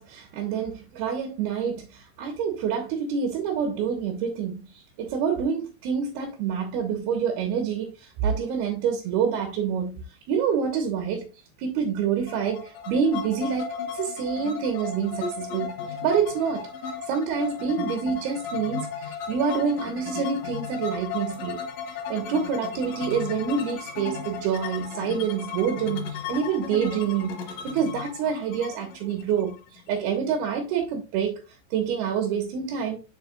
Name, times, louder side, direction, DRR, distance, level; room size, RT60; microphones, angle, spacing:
voice 1, 0.0-11.3 11.6-15.7 16.0-16.7 17.1-21.6 22.1-27.4 27.6-29.6 29.9-31.4 31.7-33.0, right 7 dB, 75° right, 3.0 m, -27 dB
sound 1, 12.3-30.0, left 6 dB, 65° left, 2.5 m, -35 dB
7.0 x 6.8 x 2.4 m
omnidirectional pair, 4.8 m